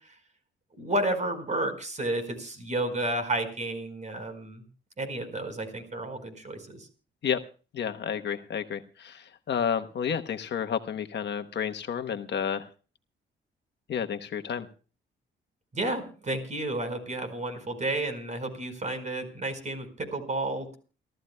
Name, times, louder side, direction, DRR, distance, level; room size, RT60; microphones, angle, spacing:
voice 1, 0.8-4.6 5.0-6.9 15.7-20.8, right 1 dB, 35° right, 8 dB, 4.7 m, -31 dB
voice 2, 7.7-12.6 13.9-14.7, left 8 dB, 60° left, 7 dB, 1.1 m, -31 dB
29.5 x 13.5 x 2.2 m, 0.36 s
cardioid pair, 105°, 20 cm